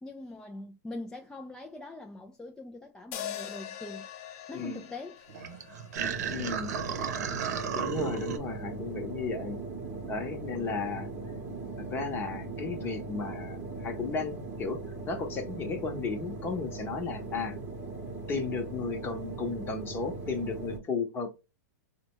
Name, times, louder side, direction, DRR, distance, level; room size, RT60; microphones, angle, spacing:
voice 1, 0.0-4.1 4.5-5.2, left 2 dB, 5° left, 0.4 m, -42 dB
sound 1, 3.1-7.4, left 10 dB, 50° left, 0.6 m, -43 dB
sound 2, 5.3-8.4, right 7 dB, 70° right, 0.7 m, -33 dB
sound 3, 6.0-20.8, right 3 dB, 25° right, 1.0 m, -39 dB
voice 2, 6.3-6.7 7.7-9.6 10.1-11.1 11.9-14.8 15.1-17.5 18.3-21.3, left 4 dB, 25° left, 0.9 m, -34 dB
4.1 x 2.2 x 2.9 m
hypercardioid pair, 125°, 9 cm